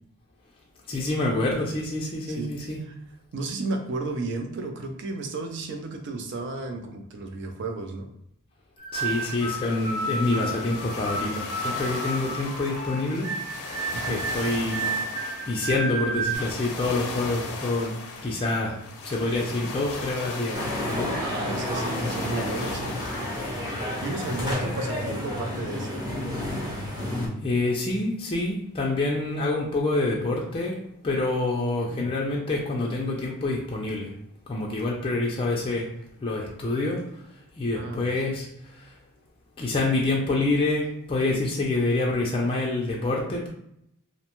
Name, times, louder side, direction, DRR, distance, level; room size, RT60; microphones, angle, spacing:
voice 1, 0.9-2.8 8.9-13.3 14.1-14.9 15.5-18.0 18.2-18.8 19.0-21.1 27.4-30.8 31.0-34.1 34.5-35.9 36.2-37.0 37.6-38.9 39.6-43.5, left 2 dB, 25° left, -2 dB, 0.4 m, -27 dB
voice 2, 3.3-8.1 13.9-14.2 19.6-19.7 21.2-22.9 24.0-26.0 31.8-32.1 37.7-38.0, right 3 dB, 55° right, 4 dB, 0.4 m, -33 dB
sound 1, 8.8-16.3, right 3 dB, 80° right, 1.0 m, -32 dB
sound 2, 8.9-24.5, left 3 dB, 80° left, 0.5 m, -38 dB
sound 3, 20.5-27.3, left 1 dB, 20° right, 0.7 m, -30 dB
2.6 x 2.2 x 2.9 m, 0.74 s
head